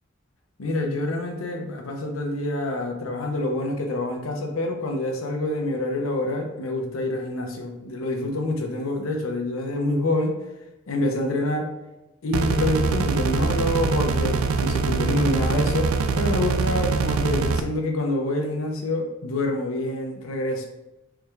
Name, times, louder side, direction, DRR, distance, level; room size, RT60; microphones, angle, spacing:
voice 1, 0.6-10.4 10.9-11.7 12.2-20.7, left 1 dB, 75° left, 3 dB, 0.6 m, -26 dB
sound 1, 12.3-17.6, right 4 dB, 85° right, 0.3 m, -23 dB
4.7 x 3.2 x 2.3 m, 0.97 s
head